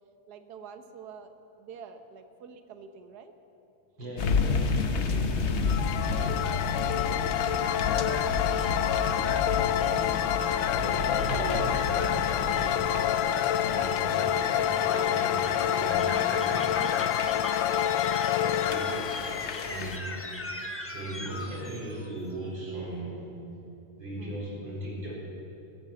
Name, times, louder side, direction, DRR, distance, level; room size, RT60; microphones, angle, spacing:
voice 1, 0.3-3.3 10.8-11.0 11.3-11.8 13.9-14.2 18.0-18.3 21.5-21.6 24.2-24.4, right 6 dB, 60° right, 8 dB, 1.5 m, -43 dB
voice 2, 4.0-5.7 6.1-6.6 10.8-17.1 18.4-19.3 19.6-20.0 20.9-23.2 24.0-25.1, right 1 dB, 80° right, -5 dB, 5.0 m, -39 dB
sound 1, 4.2-20.0, left 4 dB, 55° left, 0.8 m, -32 dB
sound 2, 5.7-20.5, left 11 dB, 85° left, 1.3 m, -28 dB
sound 3, 5.7-22.2, left 1 dB, 15° left, 0.5 m, -40 dB
17.5 x 10.5 x 7.5 m, 2.8 s
omnidirectional pair, 2.0 m